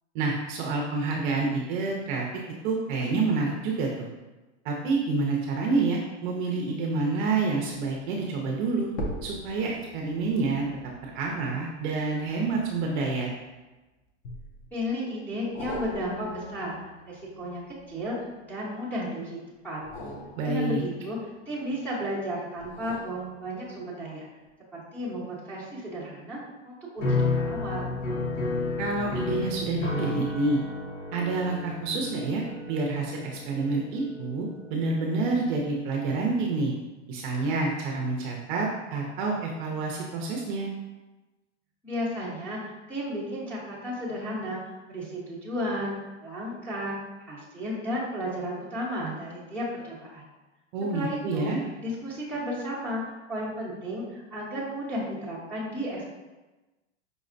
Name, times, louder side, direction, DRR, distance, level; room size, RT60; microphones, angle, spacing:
voice 1, 0.1-2.3 2.6-4.1 4.6-8.9 9.2-10.7 11.0-13.3 20.4-20.8 28.8-30.6 31.1-32.4 32.7-36.7 37.1-40.7 50.7-51.6, right 3 dB, 45° right, -1 dB, 0.5 m, -28 dB
sound 1, 8.9-13.5 14.2-14.9 15.5-18.5 19.7-21.8 22.6-24.0 24.5-24.6, equal, 25° left, 0.4 m, -42 dB
voice 2, 14.7-17.6 17.9-19.4 19.6-19.8 20.4-21.2 21.5-24.3 24.7-26.4 26.6-27.9 41.8-45.9 46.2-47.0 47.3-50.2 50.9-51.5 51.8-56.1, equal, 5° left, -8 dB, 0.8 m, -33 dB
sound 2, 27.0-35.3, left 3 dB, 90° left, 1.1 m, -32 dB
5.1 x 2.0 x 2.5 m, 1.1 s
hypercardioid pair, 140°, 36 cm